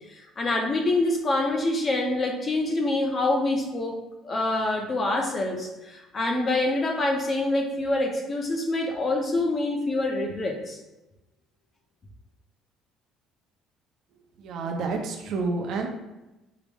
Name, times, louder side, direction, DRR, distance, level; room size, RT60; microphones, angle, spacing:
voice 1, 0.1-4.0 4.2-10.8, left 2 dB, 25° left, 2 dB, 0.6 m, -26 dB
voice 2, 14.4-15.9, right 3 dB, 60° right, 2 dB, 0.6 m, -29 dB
4.6 x 2.0 x 3.4 m, 1.0 s
cardioid pair, 150°, 0 cm